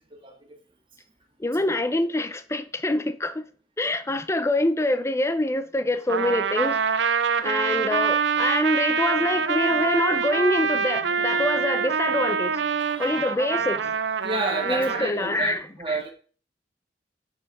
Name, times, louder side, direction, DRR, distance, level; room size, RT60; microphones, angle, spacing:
voice 1, 1.4-3.5 3.8-6.8 7.4-12.6 13.0-14.0 14.6-16.0, left 1 dB, 15° left, 0.5 m, -25 dB
Trumpet, 6.1-15.1, right 6 dB, 85° right, 0.5 m, -25 dB
voice 2, 12.7-13.1 14.2-16.1, right 3 dB, 30° right, 1.8 m, -30 dB
7.9 x 7.0 x 3.6 m
head